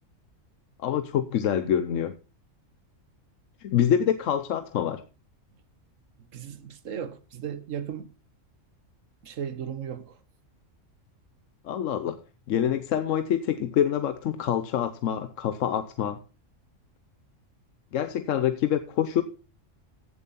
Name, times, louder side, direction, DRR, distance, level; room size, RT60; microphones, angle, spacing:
voice 1, 0.8-2.1 3.6-5.0 11.6-12.2 12.5-16.2 17.9-19.2, left 9 dB, 75° left, 1.1 m, -26 dB
voice 2, 6.3-8.1 9.2-10.2, right 8 dB, 80° right, 1.4 m, -36 dB
15.5 x 7.2 x 4.1 m
omnidirectional pair, 1.3 m